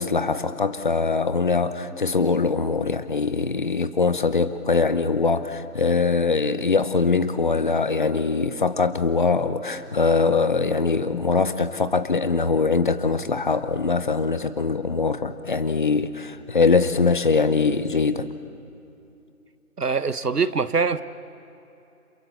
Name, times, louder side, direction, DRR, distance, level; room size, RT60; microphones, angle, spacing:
voice 1, 0.0-18.3, left 4 dB, 30° left, 12 dB, 0.9 m, -22 dB
voice 2, 19.8-21.0, right 5 dB, 80° right, 13 dB, 1.3 m, -23 dB
29.5 x 27.5 x 7.2 m, 2.8 s
figure-of-eight pair, 155°, 46 cm